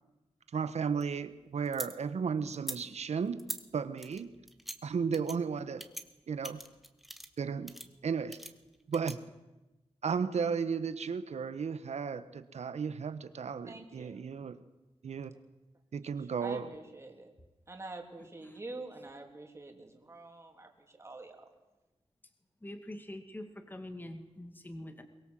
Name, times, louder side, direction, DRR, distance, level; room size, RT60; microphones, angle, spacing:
voice 1, 0.5-4.3 4.8-5.8 6.3-6.6 7.4-7.7 8.0-8.4 8.9-9.2 10.0-14.5 15.0-15.3 15.9-16.7, right 6 dB, 80° right, 12 dB, 1.3 m, -34 dB
sound 1, 0.6-1.9 2.5-2.8 3.4-3.6 4.0-4.8 5.1-5.4 5.8-6.0 6.4-7.4 7.7-7.9 8.3-9.1, equal, ahead, 1.5 m, -42 dB
voice 2, 13.6-14.2 16.4-17.3 17.7-21.5, right 2 dB, 25° right, 2 dB, 3.4 m, -46 dB
voice 3, 18.2-18.6 22.6-25.0, left 1 dB, 15° left, 6 dB, 2.2 m, -45 dB
23.5 x 21.5 x 7.7 m, 1.0 s
wide cardioid pair, 120°, 11 cm